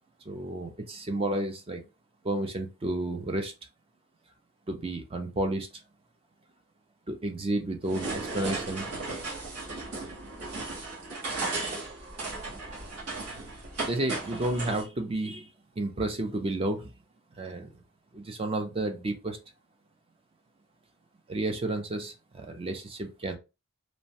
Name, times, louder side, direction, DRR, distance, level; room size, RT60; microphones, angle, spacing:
voice 1, 0.3-1.8 2.2-3.5 4.7-5.7 7.1-8.9 13.9-15.5 15.8-16.9 17.4-17.7 18.1-19.4 21.3-23.3, right 2 dB, 25° right, 0.4 m, -31 dB
sound 1, 7.8-14.8, right 3 dB, 85° right, 1.3 m, -35 dB
3.0 x 2.1 x 2.6 m
head